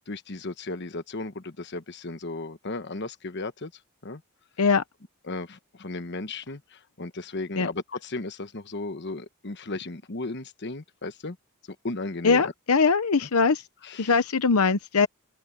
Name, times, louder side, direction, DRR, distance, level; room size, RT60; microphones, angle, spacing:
voice 1, 0.0-3.7 4.0-4.2 5.2-11.4 11.7-12.5 13.2-13.3 13.8-14.2, left 2 dB, 50° left, 1.2 m, -35 dB
voice 2, 12.2-13.6 14.0-15.1, left 4 dB, 80° left, 0.9 m, -21 dB
open air
head